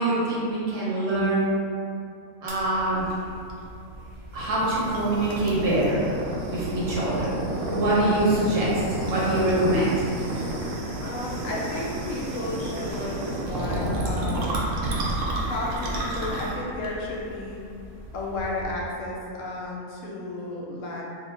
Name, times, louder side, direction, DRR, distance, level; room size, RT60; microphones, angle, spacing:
voice 1, 0.0-1.5 2.4-3.2 4.3-6.1 6.5-10.0, right 1 dB, 85° right, -7 dB, 1.4 m, -24 dB
sound 1, 2.5-18.8, right 1 dB, 70° right, 0.9 m, -31 dB
voice 2, 11.0-14.6 15.4-17.6 18.1-21.0, left 2 dB, 70° left, -3 dB, 0.9 m, -33 dB
3.0 x 2.2 x 4.0 m, 2.6 s
omnidirectional pair, 1.5 m